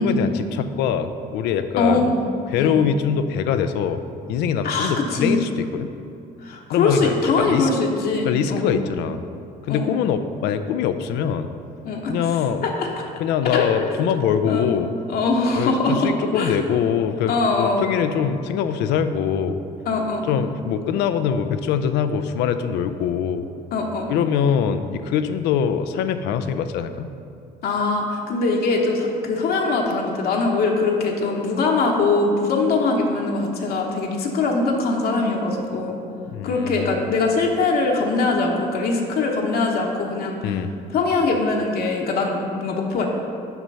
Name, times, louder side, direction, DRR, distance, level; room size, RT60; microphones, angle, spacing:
voice 1, 0.0-2.1 2.5-4.0 4.3-5.9 6.7-7.7 8.2-9.2 9.6-11.5 12.1-12.6 13.2-14.9 15.6-19.6 20.3-23.5 24.1-27.1 36.3-37.0 40.4-40.7, left 8 dB, 90° left, 10 dB, 0.5 m, -23 dB
voice 2, 1.8-2.2 2.6-2.7 4.6-5.4 6.4-8.7 9.7-9.9 11.8-12.2 12.6-12.9 13.5-14.0 14.5-14.7 15.1-16.6 17.3-17.8 19.9-20.3 23.7-24.1 27.6-36.0 36.4-40.5 40.9-43.1, left 3 dB, 65° left, 0 dB, 1.0 m, -22 dB
5.9 x 5.6 x 5.4 m, 2.5 s
cardioid pair, 110°, 17 cm